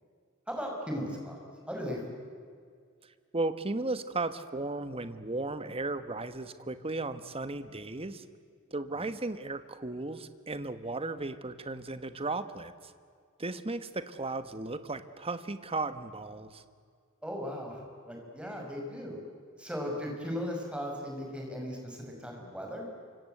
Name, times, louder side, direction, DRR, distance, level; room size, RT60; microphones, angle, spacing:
voice 1, 0.5-2.2 8.9-9.1 17.2-19.2 19.6-22.8, equal, 5° right, 0 dB, 5.8 m, -37 dB
voice 2, 3.3-8.2 8.7-12.7 13.4-16.6, right 2 dB, 30° right, 11 dB, 1.3 m, -35 dB
28.0 x 25.5 x 8.0 m, 2.1 s
head